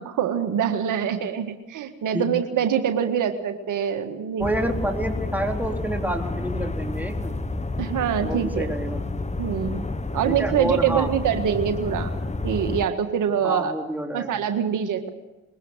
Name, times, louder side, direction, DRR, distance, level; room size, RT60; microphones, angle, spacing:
voice 1, 0.1-4.4 7.8-8.7 9.4-9.9 10.1-12.1 12.4-13.7 14.1-15.1, right 8 dB, 70° right, 6 dB, 1.7 m, -24 dB
sound 1, 4.4-12.9, left 2 dB, 20° left, 1.3 m, -30 dB
voice 2, 4.4-7.4 8.2-9.0 10.3-11.1 13.4-14.4, right 1 dB, 5° right, 2 dB, 3.8 m, -28 dB
22.0 x 17.5 x 8.1 m, 1.1 s
hypercardioid pair, 50°, 32 cm